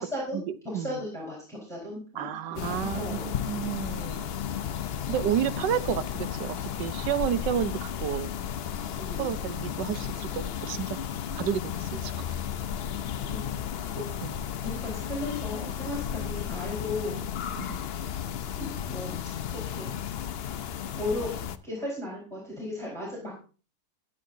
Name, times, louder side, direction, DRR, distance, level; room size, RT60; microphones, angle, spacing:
voice 1, 0.1-3.2 9.0-9.3 13.3-13.4 13.9-14.1 14.6-17.2 18.5-19.9 20.9-23.4, left 1 dB, ahead, -5 dB, 4.5 m, -36 dB
voice 2, 2.1-4.3 5.1-8.4 9.2-11.0 11.4-12.1 14.2-14.4 17.6-17.8, right 10 dB, 90° right, 13 dB, 1.4 m, -31 dB
sound 1, 2.6-21.6, left 9 dB, 75° left, 0.5 m, -34 dB
22.0 x 8.2 x 2.7 m, 0.36 s
omnidirectional pair, 1.8 m